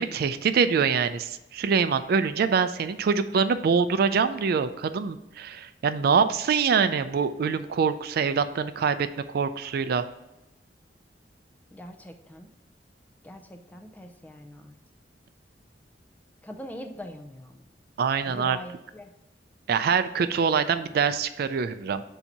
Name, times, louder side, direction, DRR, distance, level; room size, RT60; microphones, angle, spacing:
voice 1, 0.0-10.0 18.0-18.6 19.7-22.0, right 6 dB, 60° right, 11 dB, 0.4 m, -24 dB
voice 2, 11.7-12.5 13.2-14.8 16.4-17.6 18.3-19.1, left 1 dB, 10° left, 5 dB, 0.5 m, -42 dB
7.0 x 2.7 x 5.8 m, 0.95 s
head